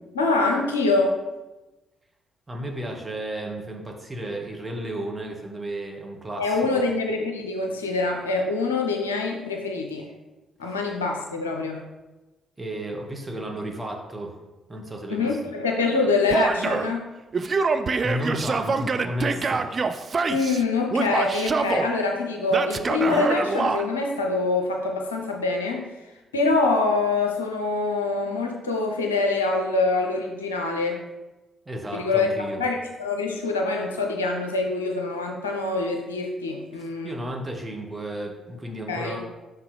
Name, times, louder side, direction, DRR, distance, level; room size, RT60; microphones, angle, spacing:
voice 1, 0.1-1.2 6.4-10.1 10.6-11.8 15.1-17.0 20.3-25.9 26.3-31.0 31.9-32.3 32.6-37.1 38.9-39.2, left 3 dB, 80° left, 2 dB, 0.6 m, -25 dB
voice 2, 2.5-6.8 10.6-10.7 12.6-14.4 14.7-15.4 18.0-19.9 31.6-32.6 36.7-39.2, right 1 dB, 20° right, 0 dB, 1.4 m, -33 dB
Male speech man speaking / Yell, 16.3-16.9 17.3-20.6 20.9-21.9 22.5-23.8, right 4 dB, 40° right, 0.4 m, -25 dB
5.7 x 5.6 x 3.3 m, 1.1 s
figure-of-eight pair, 40°, 0 cm